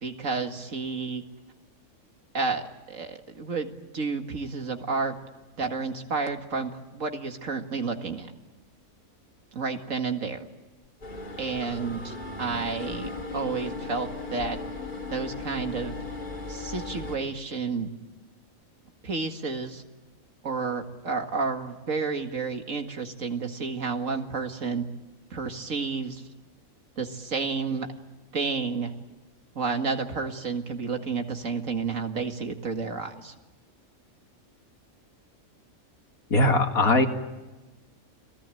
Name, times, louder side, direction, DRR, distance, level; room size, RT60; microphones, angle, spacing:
voice 1, 0.0-1.2 2.3-5.1 5.6-8.3 9.5-10.4 11.4-14.6 15.1-16.0 16.5-17.9 19.0-19.8 20.4-24.9 25.3-26.3 27.0-27.9 28.3-28.9 29.6-33.3, right 4 dB, 65° right, 5 dB, 2.3 m, -31 dB
sound 1, 11.0-17.2, left 3 dB, 35° left, 2.4 m, -37 dB
voice 2, 36.3-37.1, left 2 dB, 90° left, 4 dB, 2.7 m, -20 dB
30.0 x 20.0 x 9.1 m, 1.1 s
omnidirectional pair, 1.5 m